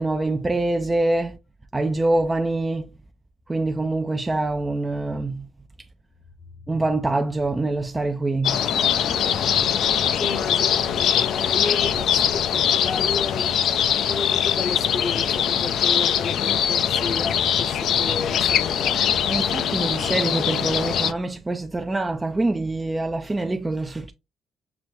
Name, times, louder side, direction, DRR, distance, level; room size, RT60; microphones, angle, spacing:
voice 1, 0.0-1.4 1.7-2.9 3.5-5.5 6.7-8.6 19.3-24.1, right 2 dB, 20° right, 0.4 m, -25 dB
sound 1, 8.4-21.1, left 9 dB, 75° left, 0.4 m, -22 dB
voice 2, 9.9-13.6 14.0-19.0, left 4 dB, 50° left, 0.7 m, -33 dB
5.9 x 2.0 x 3.1 m
cardioid pair, 90°, 0 cm